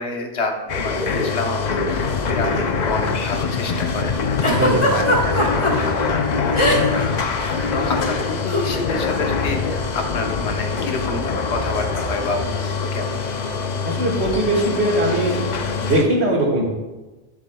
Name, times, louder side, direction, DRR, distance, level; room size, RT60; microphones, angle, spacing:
voice 1, 0.0-4.2 4.6-13.2, left 3 dB, 80° left, 3 dB, 1.2 m, -29 dB
sound 1, 0.7-16.0, left 4 dB, 50° left, 0.6 m, -24 dB
Giggle, 4.4-5.7 6.5-7.1 7.3-7.6 8.5-8.7, equal, 30° left, 1.2 m, -19 dB
voice 2, 4.5-5.0 13.8-15.4 15.8-16.6, right 1 dB, 80° right, -4 dB, 2.0 m, -20 dB
10.5 x 6.9 x 2.2 m, 1.2 s
omnidirectional pair, 1.1 m